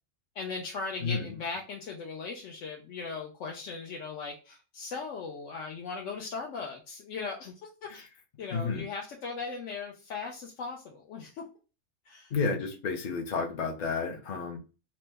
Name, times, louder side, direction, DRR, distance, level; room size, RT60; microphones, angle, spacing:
voice 1, 0.4-8.1 8.4-11.4 12.0-12.3, left 4 dB, 70° left, 0.9 m, -38 dB
voice 2, 8.5-8.8 12.3-14.6, left 4 dB, 45° left, 0.7 m, -31 dB
2.9 x 2.1 x 3.3 m
omnidirectional pair, 1.4 m